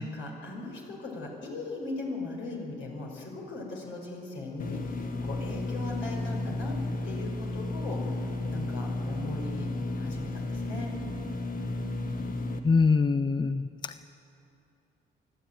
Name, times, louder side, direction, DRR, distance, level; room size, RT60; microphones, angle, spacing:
voice 1, 0.0-6.7 7.0-9.7 9.9-10.9, left 2 dB, 75° left, -1 dB, 5.4 m, -39 dB
sound 1, 4.6-12.6, left 2 dB, 45° left, 1.7 m, -33 dB
voice 2, 12.6-13.9, left 4 dB, 20° left, 12 dB, 0.5 m, -24 dB
24.5 x 12.5 x 9.2 m, 2.8 s
cardioid pair, 90°, 20 cm